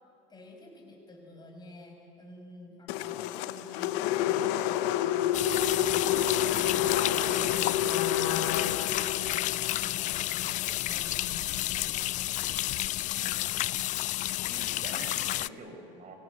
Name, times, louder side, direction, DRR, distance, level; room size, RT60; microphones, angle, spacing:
voice 1, 0.3-12.4 13.2-13.9, left 2 dB, 25° left, 1 dB, 6.0 m, -50 dB
sound 1, 2.9-11.2, left 10 dB, 65° left, 1.0 m, -29 dB
sound 2, 5.3-15.5, left 15 dB, 45° left, 0.4 m, -31 dB
voice 2, 14.4-16.2, right 2 dB, 40° right, 5 dB, 5.1 m, -46 dB
25.0 x 17.0 x 8.3 m, 2.5 s
supercardioid pair, 95°, 18 cm